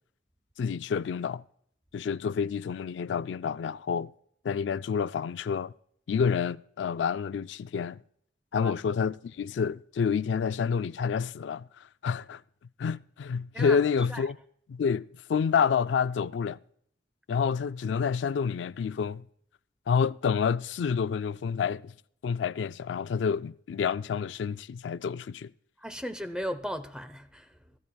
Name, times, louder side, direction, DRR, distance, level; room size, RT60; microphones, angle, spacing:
voice 1, 0.6-1.4 1.9-4.1 4.4-5.7 6.1-8.0 8.5-12.4 12.8-14.4 14.7-16.6 17.3-19.2 19.9-21.9 22.2-25.5, left 6 dB, 90° left, 0.3 m, -28 dB
voice 2, 13.5-14.3 25.8-27.8, equal, 5° right, 0.8 m, -37 dB
16.0 x 15.0 x 2.3 m
head